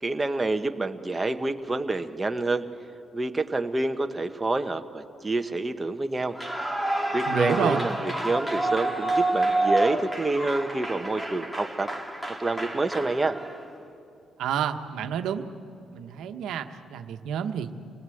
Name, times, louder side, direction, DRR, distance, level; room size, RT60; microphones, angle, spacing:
voice 1, 0.0-2.6 3.1-6.4 7.1-11.9 12.4-13.4, right 2 dB, 20° right, 6 dB, 1.2 m, -28 dB
Clapping / Cheering / Applause, 6.3-13.7, right 2 dB, 10° left, 2.3 m, -28 dB
voice 2, 7.3-7.9 14.4-15.5 15.9-17.7, right 8 dB, 85° right, 7 dB, 1.2 m, -29 dB
27.0 x 19.0 x 7.9 m, 2.8 s
cardioid pair, 90°, 0 cm